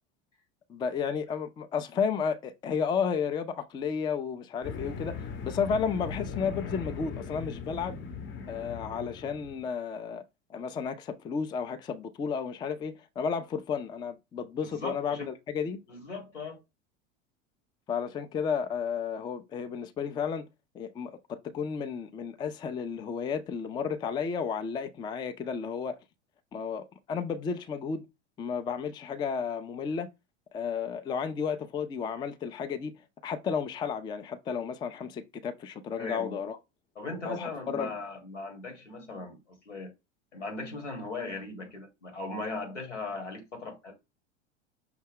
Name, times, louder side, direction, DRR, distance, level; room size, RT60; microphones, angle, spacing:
voice 1, 0.7-8.0 8.5-10.2 10.5-15.8 17.9-20.5 20.7-26.0 26.5-28.1 28.4-30.1 30.5-32.9 33.2-36.6 37.2-37.9, left 6 dB, 15° left, 0.3 m, -32 dB
sound 1, 4.6-9.7, left 5 dB, 35° left, 0.7 m, -39 dB
voice 2, 14.6-15.3 15.9-16.6 35.9-36.4 36.9-39.9 40.3-44.0, left 3 dB, 90° left, 1.4 m, -38 dB
5.6 x 2.1 x 3.6 m
hypercardioid pair, 85°, 35 cm